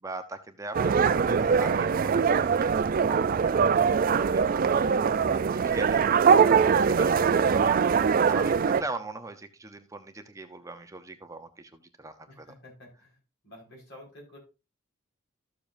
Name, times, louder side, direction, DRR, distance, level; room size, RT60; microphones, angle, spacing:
voice 1, 0.0-3.9 4.2-7.9 8.1-12.5, right 2 dB, 15° right, 7 dB, 0.7 m, -41 dB
sound 1, 0.7-8.8, right 6 dB, 45° right, 0.4 m, -22 dB
voice 2, 12.3-13.2 13.4-14.4, left 1 dB, 65° left, -1 dB, 4.9 m, -50 dB
13.5 x 6.9 x 2.6 m, 0.28 s
head